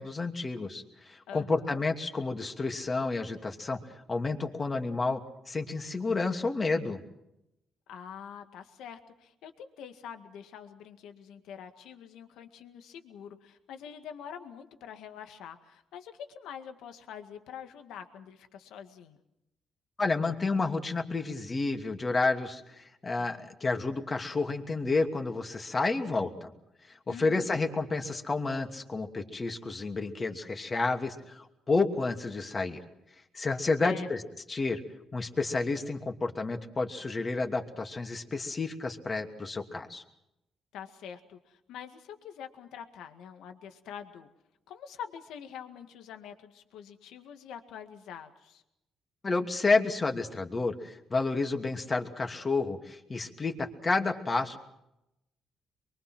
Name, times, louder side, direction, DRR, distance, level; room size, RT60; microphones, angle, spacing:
voice 1, 0.0-3.8 4.1-5.2 5.5-7.0 20.0-26.5 26.9-32.8 33.3-34.2 34.5-34.8 35.1-40.0 49.2-54.6, left 3 dB, 30° left, 4 dB, 2.7 m, -30 dB
voice 2, 1.3-1.8 7.9-19.2 27.1-27.6 33.8-34.1 40.7-44.3 44.7-48.6, left 8 dB, 85° left, 7 dB, 2.0 m, -45 dB
25.0 x 23.0 x 6.1 m, 0.86 s
cardioid pair, 90°, 0 cm